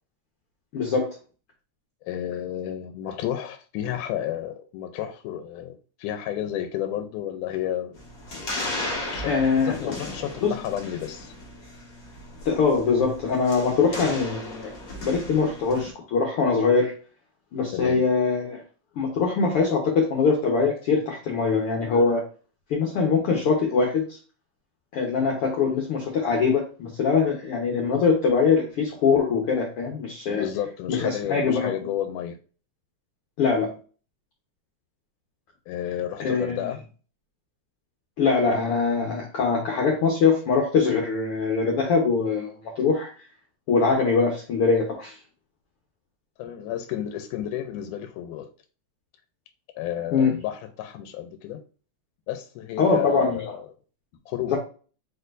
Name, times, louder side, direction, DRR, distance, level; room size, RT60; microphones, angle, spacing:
voice 1, 0.7-1.1 9.2-9.9 10.4-10.5 12.4-14.7 15.0-16.9 17.5-18.6 19.0-22.2 22.7-24.2 24.9-30.5 30.9-31.7 33.4-33.7 36.2-36.7 38.2-42.5 42.8-43.1 43.7-45.1 50.1-50.3 52.8-53.4 54.5-54.6, left 5 dB, 65° left, 0 dB, 1.5 m, -22 dB
voice 2, 2.0-8.0 8.9-11.3 17.7-18.1 30.3-32.4 35.7-36.8 46.4-48.5 49.8-51.6 52.3-53.7 54.3-54.6, left 11 dB, 90° left, 8 dB, 2.1 m, -31 dB
sound 1, 7.9-15.9, left 1 dB, 50° left, 1.1 m, -36 dB
4.7 x 4.4 x 2.5 m, 0.38 s
omnidirectional pair, 3.5 m